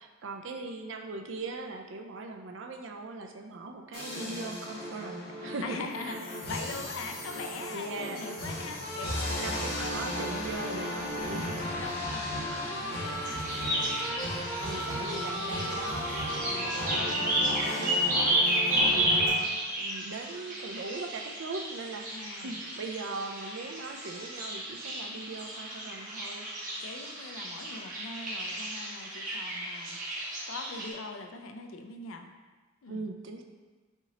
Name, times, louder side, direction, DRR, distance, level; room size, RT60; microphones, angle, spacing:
voice 1, 0.0-6.2 7.1-7.2 7.7-8.2 9.4-11.8 14.6-26.5 32.9-33.4, right 3 dB, 65° right, 4 dB, 0.4 m, -40 dB
sound 1, 3.9-19.3, left 1 dB, 50° left, 1.4 m, -35 dB
voice 2, 5.6-10.0 11.8-14.3 14.7-15.6 18.7-19.0 22.1-22.6 26.8-30.0 30.5-32.3 32.8-33.1, left 3 dB, 80° left, 5 dB, 0.4 m, -42 dB
sound 2, 13.2-30.9, right 1 dB, 40° right, 1.1 m, -32 dB
5.6 x 2.9 x 2.8 m, 1.3 s
head